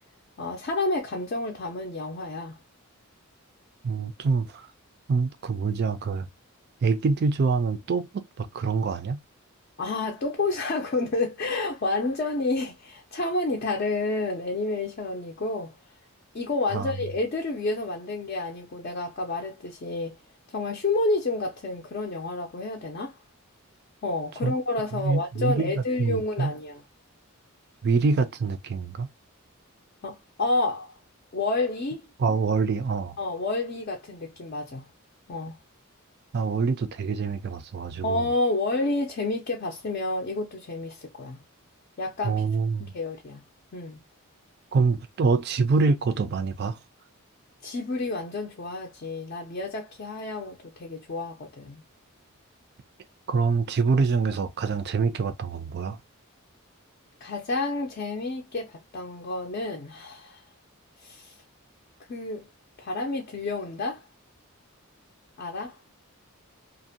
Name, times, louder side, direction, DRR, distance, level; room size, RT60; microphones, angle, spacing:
voice 1, 0.4-2.6 9.8-15.7 16.3-20.2 20.5-23.1 24.0-26.8 30.0-30.9 31.3-32.0 33.2-34.9 35.3-35.6 38.0-41.4 42.0-42.4 42.8-43.4 43.7-44.0 47.6-51.8 57.2-60.4 61.0-61.4 62.1-62.5 62.8-64.0 65.4-65.8, left 2 dB, 45° left, 0.4 m, -29 dB
voice 2, 3.8-4.7 5.1-6.3 6.8-9.2 16.7-16.9 24.4-24.5 24.9-26.5 27.8-29.1 32.2-33.2 36.3-38.3 42.2-42.9 44.7-46.8 53.3-56.0, right 4 dB, 45° right, 0.4 m, -25 dB
2.5 x 2.1 x 2.6 m
head